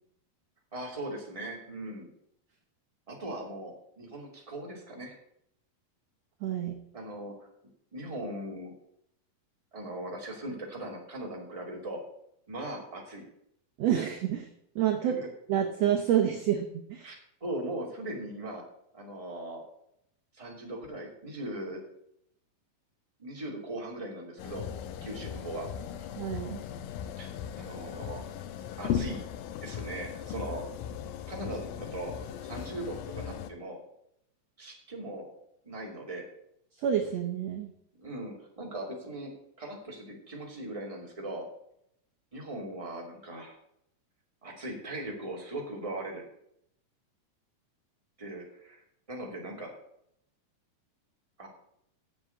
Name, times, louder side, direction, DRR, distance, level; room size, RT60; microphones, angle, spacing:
voice 1, 0.7-2.1 3.1-5.2 6.9-7.5 7.9-8.7 9.7-12.0 12.5-13.2 15.0-15.3 17.0-18.6 18.9-19.6 20.3-21.8 23.2-24.7 25.0-25.7 26.0-26.1 27.2-28.2 28.8-29.2 29.6-30.6 31.3-32.1 32.4-33.8 34.6-35.3 35.6-36.2 38.0-39.3 39.6-41.4 42.3-43.5 44.4-46.2 48.2-49.7 51.4-51.5, right 1 dB, 10° right, -1 dB, 2.2 m, -39 dB
voice 2, 6.4-6.8 13.8-14.5 14.8-15.1 15.5-17.1 26.2-26.6 36.8-37.7, right 10 dB, 65° right, 4 dB, 1.7 m, -28 dB
sound 1, 24.4-33.5, left 9 dB, 80° left, 2.4 m, -38 dB
7.8 x 7.5 x 8.1 m, 0.73 s
omnidirectional pair, 4.1 m